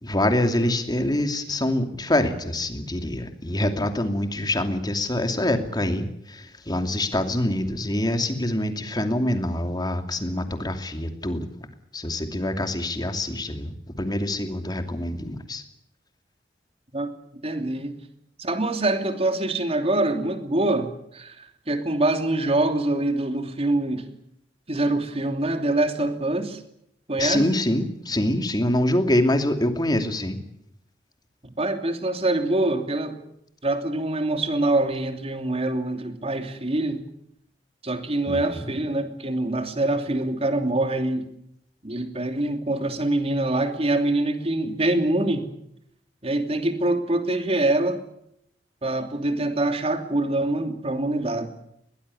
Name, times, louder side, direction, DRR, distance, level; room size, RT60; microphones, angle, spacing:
voice 1, 0.0-11.5 11.9-15.6 27.2-30.4 38.3-38.7, left 1 dB, 25° left, 6 dB, 2.7 m, -25 dB
voice 2, 17.4-18.0 18.4-24.1 24.7-26.6 27.1-27.5 31.4-33.2 33.6-37.0 37.8-41.3 41.8-45.5 46.2-48.0 48.8-51.5, right 2 dB, 35° right, 6 dB, 2.9 m, -25 dB
22.0 x 19.5 x 9.9 m, 0.76 s
head